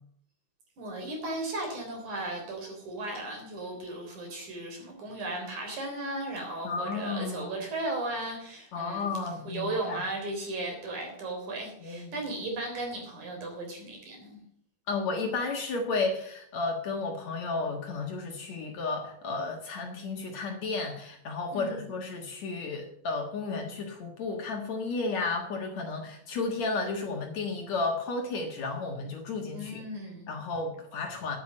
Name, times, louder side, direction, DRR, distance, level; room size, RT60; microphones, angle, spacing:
voice 1, 0.8-14.4 21.5-21.9 29.5-30.3, right 2 dB, 60° right, 1 dB, 5.0 m, -36 dB
voice 2, 6.6-7.6 8.7-10.0 11.8-12.1 14.9-29.8 30.3-31.4, left 3 dB, 55° left, 3 dB, 2.6 m, -33 dB
10.0 x 9.1 x 7.7 m, 0.67 s
omnidirectional pair, 4.1 m